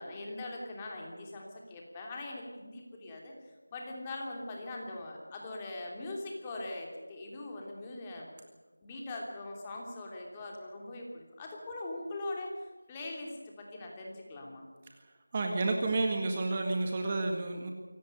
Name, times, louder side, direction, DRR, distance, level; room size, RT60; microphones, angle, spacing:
voice 1, 0.0-3.3 3.7-8.3 8.8-12.5 12.9-14.6, left 2 dB, 15° left, 0 dB, 3.0 m, -41 dB
voice 2, 15.3-17.7, right 3 dB, 20° right, 3 dB, 1.8 m, -30 dB
24.5 x 17.5 x 6.7 m, 1.4 s
figure-of-eight pair, 170°, 0 cm